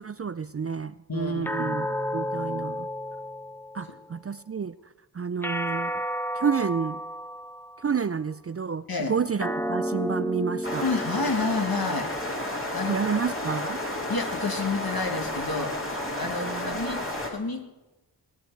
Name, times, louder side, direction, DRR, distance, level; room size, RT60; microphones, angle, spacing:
voice 1, 0.0-1.9 2.1-2.9 3.7-4.7 5.1-5.9 6.3-7.0 7.8-10.8 12.9-13.8 16.4-16.8, right 6 dB, 35° right, 15 dB, 0.4 m, -29 dB
voice 2, 1.1-1.9 3.9-4.0 8.9-9.1 10.8-12.1 12.7-13.0 14.1-15.7 16.1-17.0 17.2-17.6, left 3 dB, 60° left, 4 dB, 1.8 m, -29 dB
sound 1, 1.4-4.0 5.4-8.0 9.4-12.0, equal, 5° left, 0.7 m, -32 dB
sound 2, 10.6-17.3, left 1 dB, 30° left, 2.4 m, -32 dB
19.0 x 10.5 x 4.6 m, 1.1 s
wide cardioid pair, 60°, 41 cm